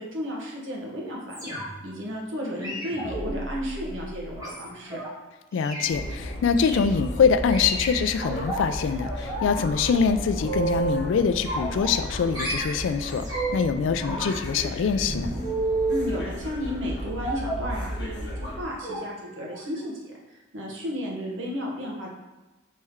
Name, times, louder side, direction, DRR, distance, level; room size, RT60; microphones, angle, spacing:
voice 1, 0.0-1.5 1.8-5.0 15.9-22.1, equal, 80° right, -2 dB, 1.0 m, -33 dB
sound 1, 1.3-1.9 2.6-5.1 5.5-5.9 6.6-6.9 7.5-8.6 9.0-9.5 9.8-11.1 11.4-12.1 12.3-13.7 14.0-16.1 17.2-17.7 18.4-18.5 18.8-19.0 19.3-19.5 19.8-19.9, right 2 dB, 20° right, 1.3 m, -32 dB
voice 2, 5.5-15.4, left 6 dB, 75° left, 9 dB, 0.3 m, -24 dB
sound 2, 5.9-18.6, equal, 55° left, 0.7 m, -35 dB
4.2 x 3.2 x 3.6 m, 1.2 s
head